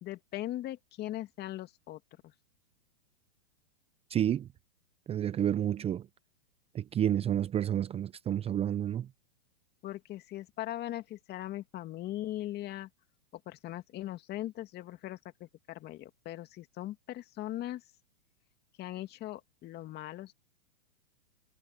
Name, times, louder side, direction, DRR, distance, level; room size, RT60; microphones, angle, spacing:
voice 1, 0.0-2.3 9.8-12.9 13.3-17.8 18.8-20.3, left 14 dB, 30° left, 2.4 m, -40 dB
voice 2, 4.1-4.5 5.1-6.1 6.7-9.1, right 10 dB, 20° right, 0.8 m, -30 dB
hypercardioid pair, 120°, 32 cm